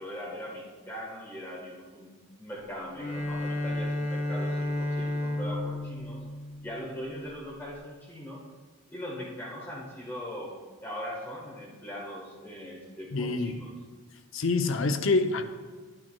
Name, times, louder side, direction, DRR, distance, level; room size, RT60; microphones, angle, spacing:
voice 1, 0.0-2.1 2.4-6.2 6.6-8.4 8.9-10.5 10.8-13.7, equal, 10° left, -4 dB, 1.3 m, -40 dB
Bowed string instrument, 2.9-7.2, left 1 dB, 30° left, 3.0 m, -32 dB
voice 2, 13.1-13.6 14.3-15.4, left 3 dB, 70° left, 7 dB, 0.6 m, -26 dB
11.5 x 9.0 x 2.3 m, 1.4 s
head